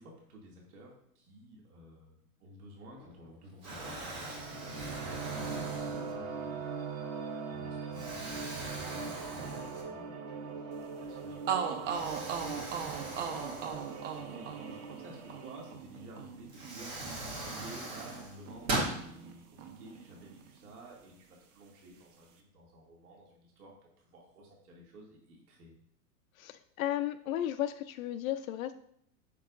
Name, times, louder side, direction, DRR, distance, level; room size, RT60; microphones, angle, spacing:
voice 1, 0.0-7.1 7.5-10.7 11.0-17.1 17.4-25.7, right 1 dB, 75° right, -2 dB, 2.4 m, -53 dB
Explosion, 2.9-3.3 3.6-6.4 7.0-7.2 7.9-10.2 10.5-10.6 11.9-14.5 15.9-16.0 16.5-19.0, right 2 dB, 15° right, 0.4 m, -40 dB
sound 1, 3.8-15.7, right 5 dB, 30° right, 0.8 m, -41 dB
sound 2, 11.1-11.2 11.5-19.3 19.6-20.7, right 7 dB, 55° right, 1.0 m, -39 dB
voice 2, 26.4-28.7, left 12 dB, 65° left, 9 dB, 0.5 m, -34 dB
8.3 x 5.9 x 2.5 m, 0.69 s
supercardioid pair, 150°, 45 cm